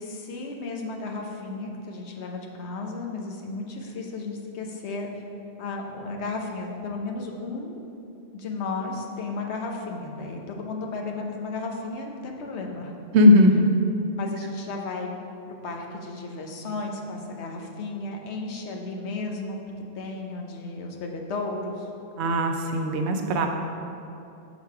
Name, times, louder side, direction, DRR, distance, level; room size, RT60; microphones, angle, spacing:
voice 1, 0.0-5.1 5.6-7.8 8.3-12.9 14.1-15.1 15.5-19.6 20.0-21.9, left 3 dB, 90° left, 1 dB, 1.0 m, -34 dB
voice 2, 13.1-13.7 22.2-23.5, left 1 dB, 90° right, 4 dB, 0.9 m, -18 dB
6.2 x 3.9 x 4.7 m, 2.7 s
omnidirectional pair, 1.1 m